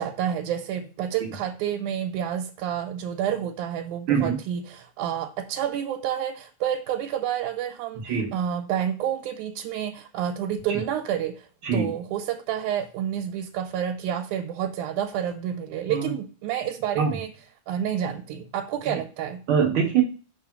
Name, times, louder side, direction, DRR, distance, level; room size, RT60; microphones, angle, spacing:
voice 1, 0.0-11.5 11.7-17.3 17.7-19.4, right 9 dB, 90° right, 3 dB, 2.2 m, -29 dB
voice 2, 8.0-8.3 10.7-10.8 11.6-11.9 15.9-16.1 16.9-17.2 19.5-20.0, right 7 dB, 65° right, 2 dB, 1.4 m, -23 dB
5.7 x 3.4 x 5.7 m, 0.37 s
omnidirectional pair, 3.4 m